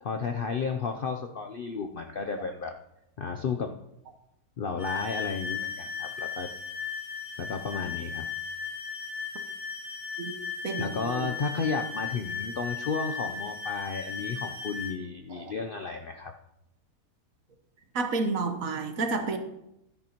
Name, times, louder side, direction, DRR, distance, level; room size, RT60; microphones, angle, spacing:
voice 1, 0.0-2.7 3.2-3.7 4.6-6.5 7.4-8.3 10.8-16.3, left 5 dB, 60° left, 0.5 m, -33 dB
sound 1, 4.8-14.9, left 6 dB, 10° left, 3.7 m, -36 dB
voice 2, 17.9-19.4, right 3 dB, 60° right, 1.3 m, -29 dB
12.5 x 10.5 x 2.9 m
omnidirectional pair, 1.6 m